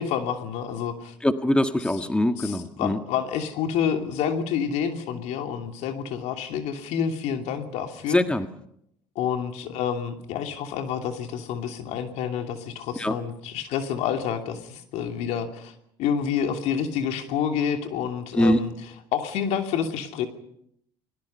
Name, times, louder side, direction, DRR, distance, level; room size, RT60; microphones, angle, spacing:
voice 1, 0.0-1.1 2.4-8.2 9.1-15.7 16.0-18.7 19.1-20.3, left 8 dB, 65° left, 5 dB, 2.8 m, -28 dB
voice 2, 1.2-3.0 8.1-8.5 13.0-13.1 18.3-18.6, left 1 dB, 10° left, 8 dB, 1.6 m, -22 dB
29.5 x 20.5 x 5.6 m, 0.73 s
hypercardioid pair, 70°, 12 cm